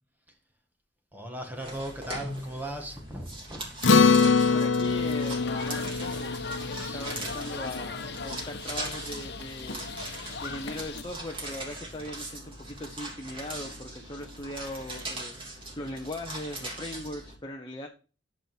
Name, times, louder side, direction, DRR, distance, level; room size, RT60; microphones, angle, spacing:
voice 1, 1.1-3.8 6.8-7.3, right 1 dB, 10° right, 4 dB, 1.7 m, -38 dB
sound 1, 1.6-17.4, right 1 dB, 30° right, 3.1 m, -40 dB
Acoustic guitar, 3.8-8.5, left 5 dB, 85° left, 1.0 m, -24 dB
voice 2, 4.5-6.4 6.7-9.9 10.4-17.9, left 1 dB, 25° left, 2 dB, 1.0 m, -39 dB
sound 2, 4.8-11.0, left 4 dB, 65° left, 1.1 m, -38 dB
10.0 x 6.3 x 4.5 m, 0.36 s
head